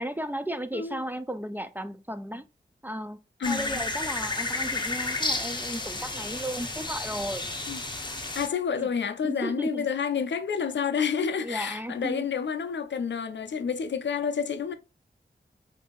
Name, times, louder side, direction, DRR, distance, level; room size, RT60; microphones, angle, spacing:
voice 1, 0.0-2.5 2.8-3.2 3.5-7.5 8.8-8.9 9.2-9.9 11.4-12.3, equal, 10° right, 0.3 m, -34 dB
voice 2, 3.4-3.8 7.7-7.8 8.3-14.7, left 6 dB, 75° left, 0.4 m, -29 dB
sound 1, 3.4-8.5, left 2 dB, 25° left, 0.7 m, -32 dB
2.6 x 2.6 x 3.7 m
wide cardioid pair, 55°, 19 cm